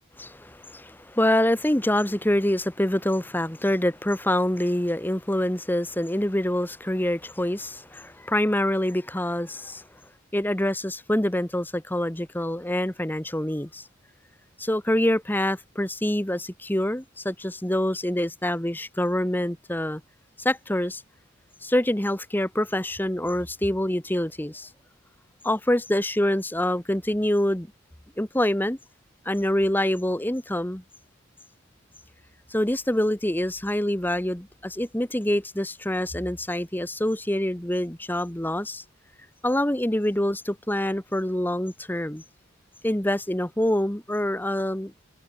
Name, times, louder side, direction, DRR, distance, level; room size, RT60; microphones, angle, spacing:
voice 1, 0.2-9.8 10.3-13.9 14.6-20.0 20.4-21.0 21.6-24.7 25.4-27.7 28.2-28.8 29.2-30.8 32.5-38.8 39.4-42.2 42.8-44.9, left 1 dB, 10° left, 1.1 m, -26 dB
open air
head